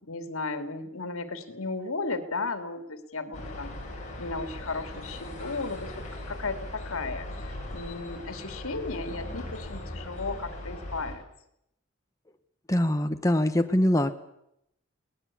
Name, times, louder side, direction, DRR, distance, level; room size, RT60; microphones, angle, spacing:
voice 1, 0.0-3.7 4.2-11.2, left 3 dB, 80° left, 9 dB, 2.6 m, -35 dB
sound 1, 3.3-11.1, left 1 dB, 35° left, 6.9 m, -39 dB
voice 2, 12.7-14.1, left 1 dB, 15° left, 7 dB, 1.0 m, -23 dB
22.0 x 18.5 x 8.6 m, 0.79 s
head